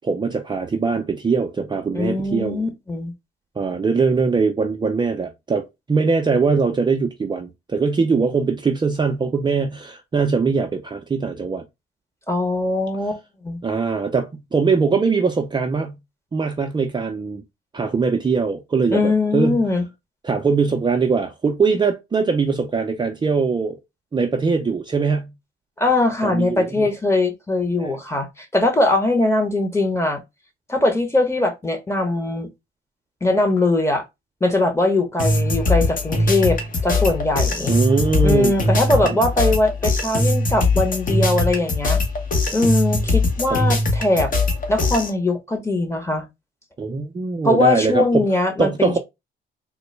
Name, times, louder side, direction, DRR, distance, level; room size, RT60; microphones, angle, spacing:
voice 1, 0.0-2.6 3.6-11.6 13.6-16.0 16.3-17.4 17.7-19.6 20.2-23.8 24.1-25.3 26.2-26.9 27.8-28.0 37.7-38.6 42.6-42.7 43.5-43.6 46.8-48.3 48.6-49.0, right 4 dB, 25° right, 0.5 m, -21 dB
voice 2, 1.9-3.1 12.3-13.6 18.9-19.8 25.8-30.2 30.7-32.5 33.2-34.0 34.4-37.7 38.2-42.0 42.5-44.3 44.7-46.3 47.4-49.0, left 2 dB, 15° left, 1.0 m, -21 dB
sound 1, 35.2-45.1, left 2 dB, 45° left, 1.0 m, -21 dB
3.7 x 2.1 x 3.1 m
cardioid pair, 90°, 20 cm